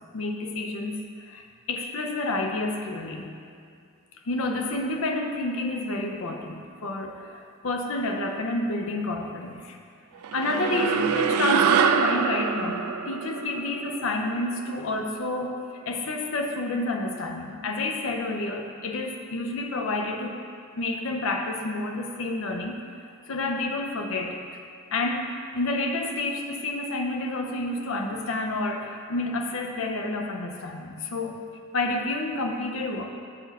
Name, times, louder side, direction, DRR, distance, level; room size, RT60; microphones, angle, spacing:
voice 1, 0.1-3.3 4.2-9.8 10.3-15.6 15.8-20.4 20.8-24.4 24.9-31.4 31.7-33.0, left 2 dB, 70° left, 3 dB, 0.6 m, -29 dB
sound 1, 10.2-14.9, right 7 dB, 90° right, 0.3 m, -25 dB
6.9 x 4.2 x 4.1 m, 2.3 s
head